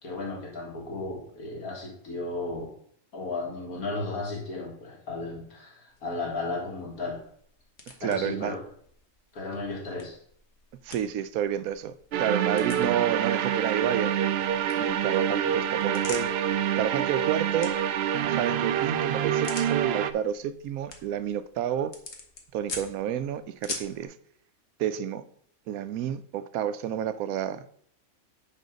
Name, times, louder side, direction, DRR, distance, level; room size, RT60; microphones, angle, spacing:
voice 1, 0.0-2.7 3.1-7.2 8.0-8.6 9.3-10.2, left 3 dB, 80° left, 2.3 m, -34 dB
sound 1, 5.9-24.0, left 3 dB, 50° left, 1.5 m, -46 dB
voice 2, 8.0-8.6 10.8-14.1 14.8-16.3 16.8-17.7 18.3-21.9 22.5-24.1 24.8-25.2 25.7-27.7, right 9 dB, 80° right, 1.0 m, -30 dB
sound 2, 12.1-20.1, right 9 dB, 65° right, 0.6 m, -26 dB
9.1 x 4.3 x 5.1 m
omnidirectional pair, 1.5 m